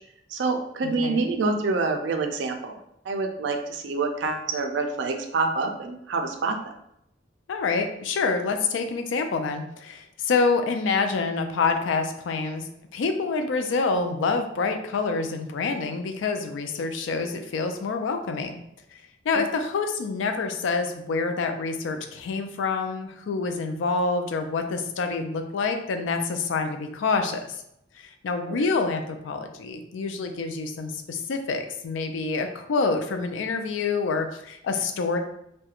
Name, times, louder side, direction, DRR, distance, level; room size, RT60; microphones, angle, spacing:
voice 1, 0.3-2.8 3.1-6.6 28.5-28.6, right 3 dB, 70° right, 5 dB, 0.4 m, -27 dB
voice 2, 0.8-1.2 7.5-18.6 18.9-27.6 28.0-35.2, left 4 dB, 80° left, 6 dB, 0.3 m, -27 dB
2.8 x 2.2 x 2.4 m, 0.77 s
head